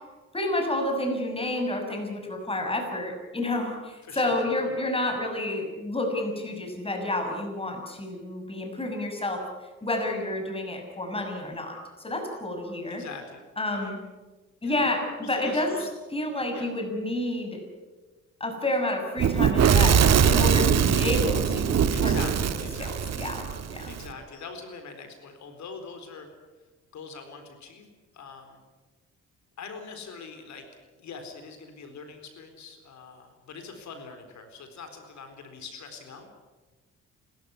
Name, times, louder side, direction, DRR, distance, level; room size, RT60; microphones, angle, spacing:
voice 1, 0.3-9.4 9.8-13.0 13.6-14.0 14.6-15.7 16.1-17.6 18.4-22.3 22.8-23.9, left 1 dB, 20° left, 3 dB, 6.7 m, -30 dB
voice 2, 4.0-4.4 4.6-4.7 12.9-13.4 13.8-13.9 14.6-14.8 15.2-15.9 16.5-16.7 21.9-23.2 23.9-26.3 26.9-27.9 28.1-28.6 29.6-30.6 31.0-36.3, left 5 dB, 70° left, 6 dB, 4.2 m, -43 dB
Fire / Explosion, 19.2-24.0, right 8 dB, 60° right, 1.7 m, -22 dB
29.0 x 14.0 x 9.7 m, 1.2 s
cardioid pair, 90°, 30 cm